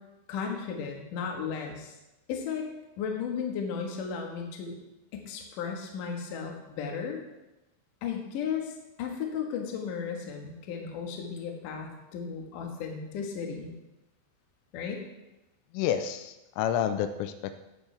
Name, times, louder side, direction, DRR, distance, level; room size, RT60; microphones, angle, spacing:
voice 1, 0.3-1.9 2.3-2.7 3.0-4.7 5.1-7.2 8.0-8.7 9.0-13.7 14.7-15.0, left 6 dB, 65° left, 1 dB, 2.3 m, -35 dB
voice 2, 15.7-17.6, left 9 dB, 85° left, 9 dB, 3.1 m, -29 dB
14.5 x 8.7 x 3.4 m, 0.97 s
omnidirectional pair, 5.7 m